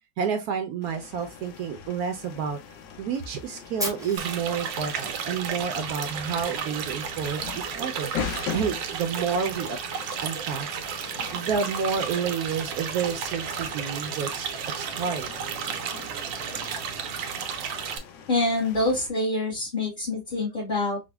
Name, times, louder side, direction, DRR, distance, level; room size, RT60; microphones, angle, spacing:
voice 1, 0.2-2.6 3.0-8.1 8.5-9.8 10.2-10.7 11.3-14.5 14.8-15.3, right 6 dB, 70° right, 0.9 m, -29 dB
sound 1, 0.8-19.1, left 7 dB, 80° left, 1.3 m, -42 dB
Fire, 3.8-5.8, equal, 5° right, 0.5 m, -36 dB
sound 2, 4.2-18.0, right 7 dB, 85° right, 1.3 m, -33 dB
voice 2, 18.3-21.0, left 2 dB, 40° left, 0.8 m, -26 dB
5.0 x 2.1 x 2.2 m
omnidirectional pair, 1.9 m